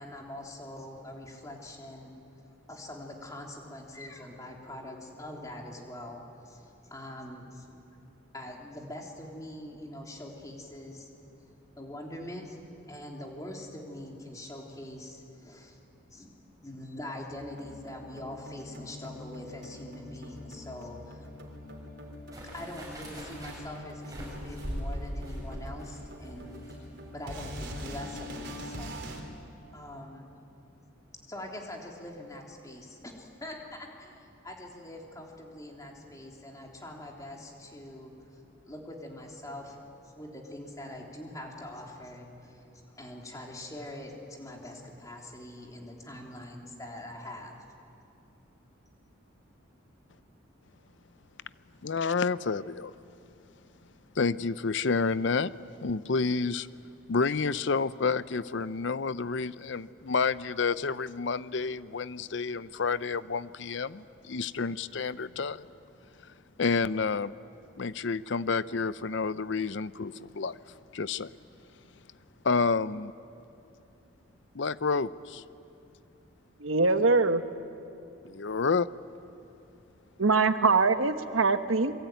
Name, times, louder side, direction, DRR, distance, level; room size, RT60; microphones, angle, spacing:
voice 1, 0.0-2.1 2.7-7.8 8.3-11.1 11.8-12.6 12.9-15.8 16.1-16.3 16.6-21.3 22.5-26.5 27.1-29.1 29.7-30.3 31.2-38.1 38.6-42.6 43.0-47.6, left 1 dB, 15° left, 0 dB, 3.4 m, -43 dB
sound 1, 17.3-29.2, left 1 dB, 55° right, 3.9 m, -43 dB
sound 2, 22.3-27.7 28.0-28.1, equal, 20° right, 7.4 m, -40 dB
voice 2, 51.8-52.9 54.2-55.5 55.8-56.7 57.1-65.7 66.6-67.3 67.8-70.6 70.9-71.3 72.4-73.1 74.5-75.4 78.2-78.9, left 4 dB, 60° left, 16 dB, 0.6 m, -29 dB
voice 3, 76.6-77.4 80.2-81.9, right 3 dB, 85° right, 9 dB, 1.3 m, -23 dB
28.0 x 22.5 x 9.3 m, 2.6 s
head